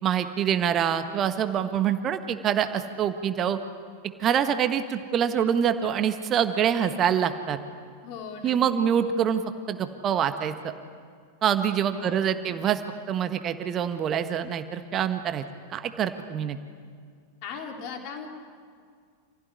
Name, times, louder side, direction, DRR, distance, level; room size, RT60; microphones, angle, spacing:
voice 1, 0.0-3.6 4.2-7.6 8.4-9.4 9.7-10.5 11.4-12.8 13.1-15.4 15.7-16.6, right 8 dB, 30° right, 9 dB, 1.5 m, -25 dB
voice 2, 8.0-8.9 12.0-12.5 17.4-18.3, left 6 dB, 45° left, 2 dB, 4.1 m, -39 dB
28.0 x 16.5 x 9.6 m, 2.1 s
figure-of-eight pair, 90°, 0 cm